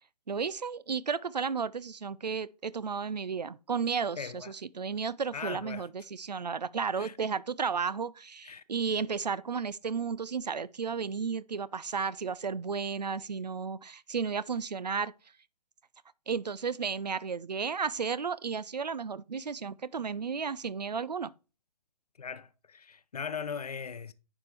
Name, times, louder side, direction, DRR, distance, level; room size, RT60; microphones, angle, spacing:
voice 1, 0.3-15.1 16.3-21.3, right 5 dB, 80° right, 0.4 m, -33 dB
voice 2, 4.2-4.5 5.3-5.9 6.9-7.1 8.4-8.6 22.2-24.1, left 6 dB, 70° left, 0.6 m, -39 dB
9.6 x 4.5 x 3.3 m
figure-of-eight pair, 125°, 21 cm